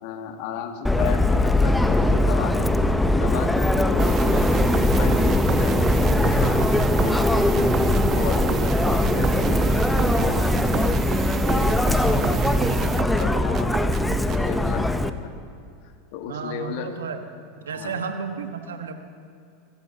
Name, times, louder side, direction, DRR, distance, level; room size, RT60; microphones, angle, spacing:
voice 1, 0.0-4.5 5.0-10.9 11.4-15.6 16.1-16.9 17.7-18.0, left 8 dB, 60° left, 5 dB, 1.5 m, -35 dB
Subway metro underground, 0.8-15.1, left 2 dB, 5° left, 0.7 m, -21 dB
sound 1, 4.0-14.5, right 9 dB, 35° right, 0.3 m, -28 dB
voice 2, 16.3-17.2 17.7-18.9, right 5 dB, 85° right, 6 dB, 1.3 m, -32 dB
20.5 x 16.5 x 2.9 m, 2.4 s
hypercardioid pair, 90°, 0 cm